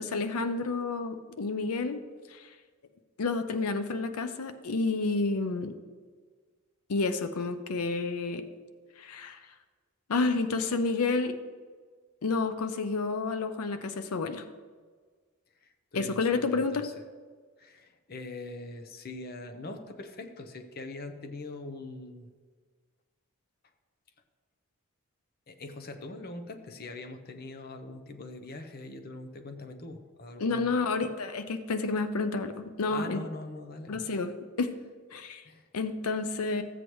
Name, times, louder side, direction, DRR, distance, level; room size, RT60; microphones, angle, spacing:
voice 1, 0.0-2.0 2.3-2.5 3.2-5.7 6.9-8.4 9.0-9.4 10.1-11.3 12.2-14.4 15.9-16.8 30.4-33.2 33.9-34.7 35.1-35.4 35.7-36.6, left 3 dB, 90° left, 9 dB, 0.6 m, -30 dB
voice 2, 15.6-16.9 17.6-22.3 25.5-30.8 32.9-34.1 35.4-35.7, left 2 dB, 45° left, 7 dB, 0.7 m, -42 dB
14.5 x 8.1 x 3.1 m, 1.5 s
head